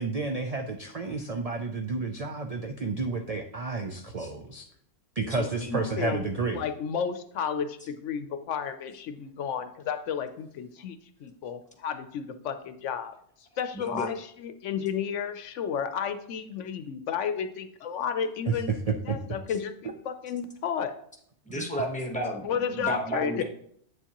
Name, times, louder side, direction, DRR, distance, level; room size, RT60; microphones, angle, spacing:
voice 1, 0.0-4.7 5.2-6.6 18.5-19.2 21.5-21.7, right 4 dB, 50° right, 5 dB, 0.4 m, -31 dB
voice 2, 5.2-5.8 13.7-14.1 21.5-23.4, equal, 5° left, 1 dB, 1.1 m, -32 dB
voice 3, 6.5-13.1 13.6-18.7 19.1-20.9 22.4-23.4, left 7 dB, 75° left, 9 dB, 0.9 m, -32 dB
8.3 x 6.9 x 2.9 m, 0.66 s
omnidirectional pair, 1.3 m